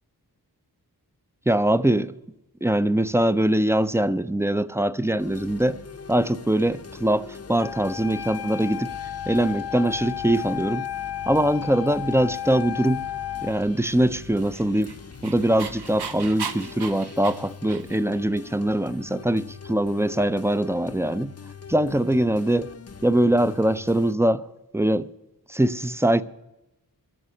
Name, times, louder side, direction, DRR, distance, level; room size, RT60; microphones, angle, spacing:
voice 1, 1.5-2.1 2.6-5.8 6.1-8.9 9.3-10.9 11.3-13.1 13.4-14.9 15.2-21.3 21.7-22.7 23.0-24.4 24.7-25.1 25.5-26.2, right 1 dB, 5° right, 0.4 m, -22 dB
sound 1, 5.2-24.1, left 6 dB, 40° left, 0.6 m, -43 dB
Wind instrument woodwind instrument, 7.6-13.6, left 11 dB, 85° left, 0.6 m, -33 dB
Dog, 14.4-18.2, right 6 dB, 90° right, 0.8 m, -36 dB
12.5 x 6.4 x 9.7 m
wide cardioid pair, 65°, 39 cm